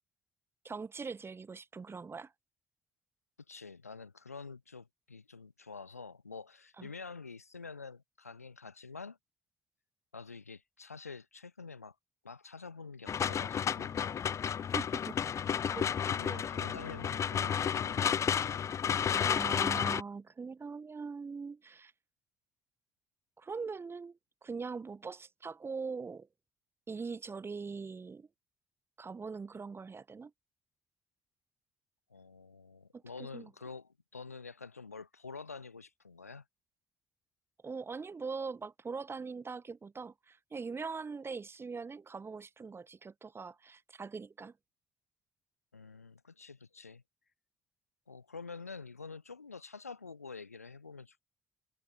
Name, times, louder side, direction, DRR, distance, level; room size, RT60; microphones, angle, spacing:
voice 1, 0.6-2.3 6.8-6.9 14.7-15.2 15.8-15.9 16.3-16.4 19.2-21.9 23.4-26.3 26.9-28.3 29.0-30.3 33.2-33.5 37.6-44.5, right 4 dB, 30° right, 1.8 m, -42 dB
voice 2, 3.5-9.2 10.1-11.9 12.2-13.9 15.8-18.2 32.1-36.4 45.7-47.0 48.1-51.3, left 4 dB, 90° left, 1.6 m, -48 dB
sound 1, 13.1-20.0, left 8 dB, 40° left, 0.4 m, -32 dB
figure-of-eight pair, 45°, 8 cm